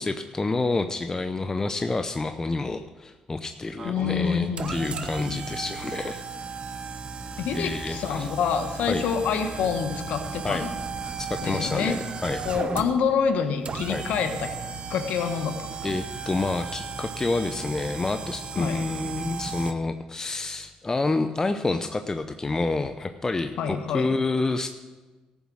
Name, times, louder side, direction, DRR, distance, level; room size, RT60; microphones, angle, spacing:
voice 1, 0.0-6.2 7.5-8.3 8.9-9.0 10.4-10.7 11.3-12.4 13.9-14.0 15.8-24.7, left 3 dB, 25° left, 8 dB, 0.6 m, -28 dB
voice 2, 3.8-5.4 7.4-10.8 11.4-11.9 12.4-14.5 14.9-16.0 18.6-18.9 23.6-24.2, left 6 dB, 75° left, 7 dB, 1.1 m, -27 dB
sound 1, 3.8-19.7, right 5 dB, 45° right, 0.9 m, -35 dB
14.0 x 7.2 x 6.3 m, 1.2 s
supercardioid pair, 70°, 2 cm